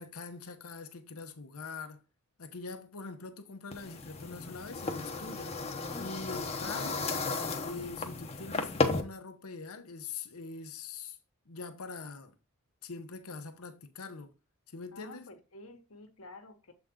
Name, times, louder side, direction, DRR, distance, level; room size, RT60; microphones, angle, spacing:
voice 1, 0.0-2.0 2.4-5.6 6.0-7.1 7.6-11.2 11.5-12.3 12.8-14.3 14.7-15.3, left 4 dB, 90° left, 0.9 m, -43 dB
sound 1, 3.7-9.0, left 3 dB, 30° left, 0.8 m, -34 dB
voice 2, 14.9-16.7, left 2 dB, 70° left, 1.3 m, -51 dB
7.4 x 3.9 x 3.6 m
head